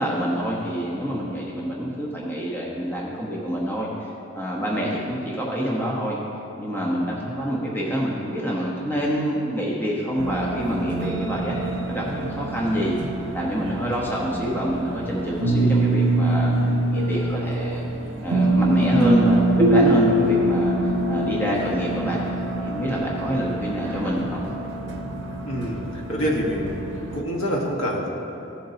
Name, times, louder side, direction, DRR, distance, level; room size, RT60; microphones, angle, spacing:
voice 1, 0.0-3.9 4.3-6.2 6.6-11.6 11.9-12.9 13.3-16.5 16.9-17.8 18.2-20.7 21.1-22.2 22.6-24.4, equal, 10° left, -4 dB, 1.1 m, -26 dB
sound 1, 10.2-27.2, right 1 dB, 65° right, 0.8 m, -24 dB
voice 2, 25.5-26.8 27.1-28.1, equal, 85° left, -2 dB, 1.5 m, -26 dB
15.5 x 7.3 x 2.9 m, 2.9 s
head